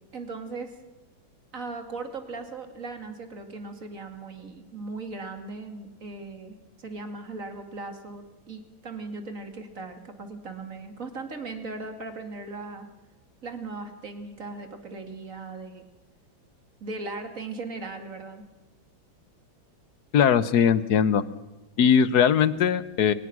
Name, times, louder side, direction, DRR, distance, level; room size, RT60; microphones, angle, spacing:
voice 1, 0.1-0.7 1.5-12.9 13.4-15.8 16.8-18.4, right 3 dB, 40° right, 7 dB, 2.8 m, -38 dB
voice 2, 20.1-21.2 21.8-23.1, left 7 dB, 60° left, 16 dB, 1.3 m, -20 dB
24.0 x 19.0 x 6.1 m, 1.1 s
omnidirectional pair, 2.1 m